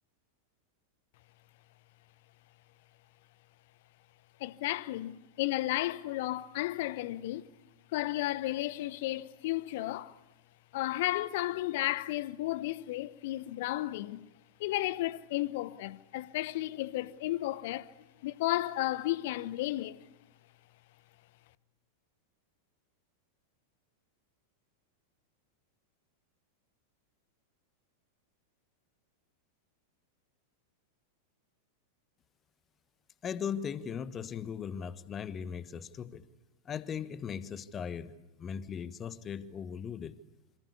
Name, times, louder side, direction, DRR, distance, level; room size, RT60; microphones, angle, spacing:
voice 1, 4.4-7.5 7.9-10.2 10.7-14.2 14.6-17.9 18.2-20.0, left 16 dB, 50° left, 1.0 m, -33 dB
voice 2, 33.2-36.2 36.6-40.2, left 7 dB, 25° left, 1.3 m, -38 dB
27.0 x 26.5 x 8.4 m
figure-of-eight pair, 90°, 0 cm